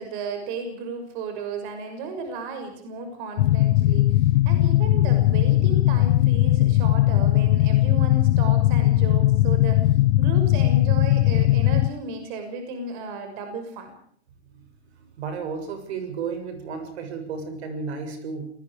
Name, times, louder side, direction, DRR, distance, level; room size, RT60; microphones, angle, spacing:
voice 1, 0.0-13.9, right 3 dB, 45° right, 6 dB, 6.3 m, -34 dB
sound 1, 3.4-11.9, left 15 dB, 50° left, 1.0 m, -19 dB
voice 2, 15.0-18.5, right 5 dB, 70° right, 7 dB, 7.0 m, -33 dB
27.5 x 20.5 x 4.9 m, 0.62 s
supercardioid pair, 160°, 33 cm